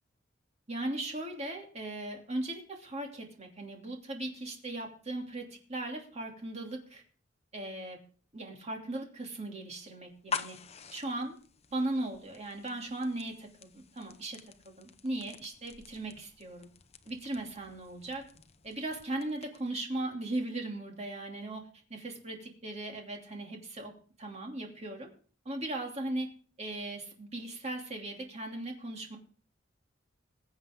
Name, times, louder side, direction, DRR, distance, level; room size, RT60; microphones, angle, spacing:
voice 1, 0.7-7.0 7.5-8.0 8.3-10.6 10.9-11.3 11.7-14.4 14.6-16.7 17.1-18.2 18.6-25.1 25.4-26.3 26.6-29.2, right 1 dB, 35° right, 1 dB, 2.8 m, -38 dB
sound 1, 10.1-19.8, left 5 dB, 35° left, 0.8 m, -46 dB
21.0 x 8.0 x 3.7 m, 0.42 s
head